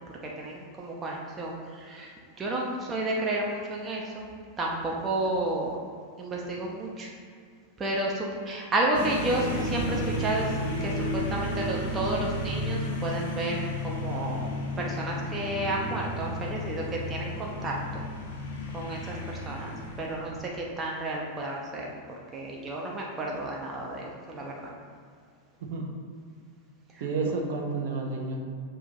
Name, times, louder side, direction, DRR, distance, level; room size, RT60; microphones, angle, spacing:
voice 1, 0.2-4.2 4.6-5.8 6.2-7.1 7.8-10.5 10.8-18.0 18.7-19.2 19.5-21.9 22.3-24.7 26.9-27.0, right 2 dB, 20° right, -2 dB, 1.1 m, -31 dB
sound 1, 8.9-20.7, left 1 dB, 55° left, 1.3 m, -33 dB
voice 2, 27.0-28.4, right 4 dB, 50° right, 1 dB, 1.1 m, -30 dB
7.5 x 6.5 x 2.6 m, 2.2 s
figure-of-eight pair, 90°, 0 cm